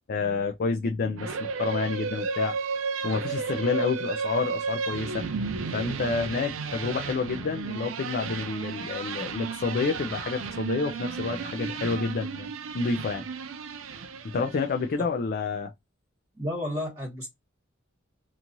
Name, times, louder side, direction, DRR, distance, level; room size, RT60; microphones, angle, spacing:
voice 1, 0.1-2.6 3.0-5.3 5.7-13.2 14.3-15.7, left 4 dB, 50° left, 0.4 m, -29 dB
sound 1, 1.2-14.8, right 5 dB, 80° right, 0.5 m, -33 dB
voice 2, 16.3-17.3, left 1 dB, 20° right, 1.1 m, -32 dB
3.0 x 2.4 x 2.6 m
head